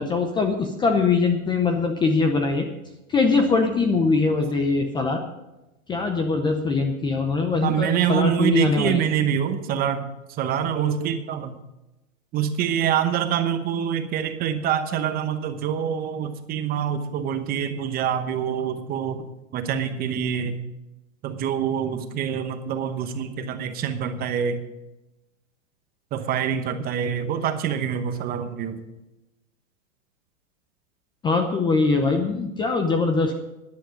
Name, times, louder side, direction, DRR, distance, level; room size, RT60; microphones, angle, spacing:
voice 1, 0.0-2.7 3.1-5.2 5.9-9.0 31.2-33.4, left 4 dB, 10° left, 5 dB, 0.6 m, -22 dB
voice 2, 7.6-11.6 12.3-19.3 19.5-20.6 21.2-24.6 26.1-28.8, right 8 dB, 20° right, 9 dB, 1.0 m, -25 dB
12.5 x 10.5 x 5.1 m, 0.97 s
hypercardioid pair, 140°, 40 cm